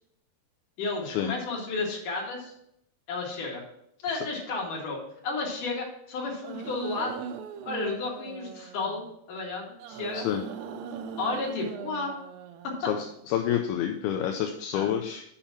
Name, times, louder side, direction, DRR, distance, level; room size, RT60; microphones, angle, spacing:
voice 1, 0.8-2.5 3.1-3.6 4.0-7.2 7.6-10.3 11.2-12.2 12.6-12.9 14.7-14.9, left 3 dB, 55° left, -3 dB, 3.3 m, -32 dB
sound 1, 6.4-9.1 9.8-13.3, right 7 dB, 90° right, 2.7 m, -40 dB
voice 2, 12.9-15.2, left 10 dB, 80° left, 3 dB, 2.5 m, -28 dB
7.1 x 5.6 x 5.8 m, 0.74 s
omnidirectional pair, 4.6 m